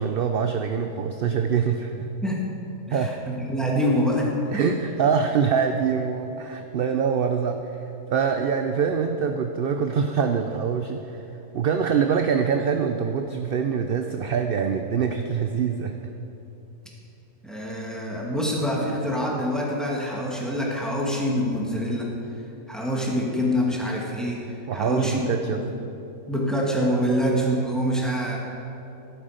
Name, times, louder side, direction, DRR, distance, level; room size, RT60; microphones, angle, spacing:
voice 1, 0.0-2.1 2.9-3.2 4.5-7.6 8.1-11.2 11.5-16.0 24.7-25.6, right 6 dB, 55° right, 6 dB, 0.7 m, -24 dB
voice 2, 2.9-4.6 17.4-22.1 22.7-25.6 26.3-28.4, equal, ahead, -3 dB, 2.1 m, -25 dB
13.5 x 11.5 x 5.1 m, 2.9 s
omnidirectional pair, 1.4 m